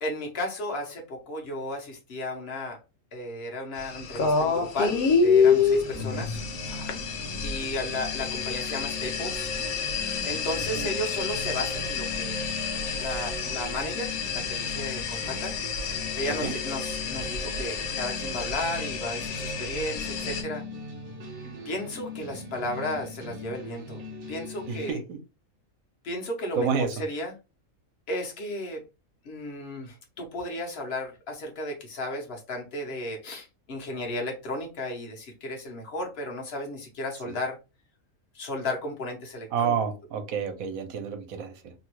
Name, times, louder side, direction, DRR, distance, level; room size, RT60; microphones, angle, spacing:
voice 1, 0.0-2.8 3.1-6.4 7.4-9.5 10.2-12.4 13.0-15.5 16.2-20.6 21.6-24.0 24.3-25.0 26.0-26.7 27.0-27.3 28.1-28.8 29.2-37.6 38.3-39.8, left 1 dB, 50° left, 1 dB, 1.1 m, -34 dB
sound 1, 3.8-20.4, left 5 dB, 90° left, 1.1 m, -28 dB
sound 2, 5.4-24.9, left 1 dB, 45° right, 1.0 m, -40 dB
voice 2, 24.7-25.2 26.6-27.0 37.3-37.4 39.5-41.7, right 6 dB, 70° right, 6 dB, 1.1 m, -29 dB
3.0 x 2.3 x 3.0 m, 0.28 s
omnidirectional pair, 1.5 m